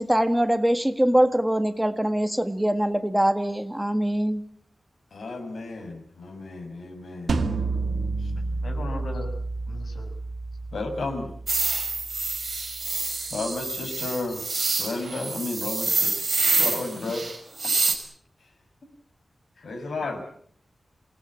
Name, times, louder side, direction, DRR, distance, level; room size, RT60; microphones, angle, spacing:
voice 1, 0.0-4.4, right 1 dB, 5° right, 1.7 m, -23 dB
voice 2, 5.1-7.4 8.2-8.3 10.7-11.3 13.3-14.4 14.8-16.2 16.6-17.3 19.6-20.2, left 3 dB, 80° left, 6.2 m, -32 dB
sound 1, 7.3-12.4, right 3 dB, 75° right, 2.2 m, -30 dB
voice 3, 8.6-9.3 9.7-10.1 19.6-19.7 20.0-20.2, left 2 dB, 65° left, 6.8 m, -37 dB
sound 2, 11.5-17.9, right 3 dB, 45° right, 5.1 m, -27 dB
27.5 x 18.0 x 8.8 m
wide cardioid pair, 130°, 0 cm